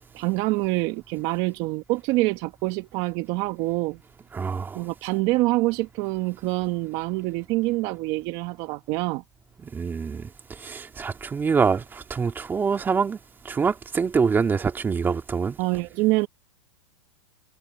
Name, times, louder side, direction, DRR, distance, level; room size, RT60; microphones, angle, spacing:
voice 1, 0.1-4.0 4.7-9.2 15.6-16.3, right 21 dB, 35° right, 1.5 m, -26 dB
voice 2, 4.3-4.8 9.6-10.3 10.6-13.2 13.5-15.6, right 5 dB, 10° right, 2.2 m, -25 dB
hypercardioid pair, 150°, 17 cm